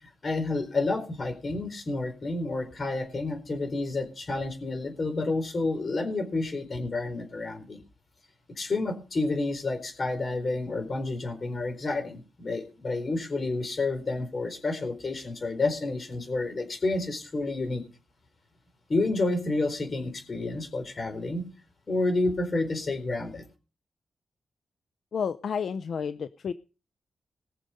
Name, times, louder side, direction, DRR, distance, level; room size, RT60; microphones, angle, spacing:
voice 1, 0.0-7.8 8.6-17.8 18.9-21.5 21.9-23.4, left 2 dB, 40° left, 6 dB, 4.2 m, -30 dB
voice 2, 25.1-26.5, left 6 dB, 70° left, 13 dB, 0.5 m, -31 dB
20.0 x 6.8 x 5.2 m, 0.34 s
wide cardioid pair, 105°, 0 cm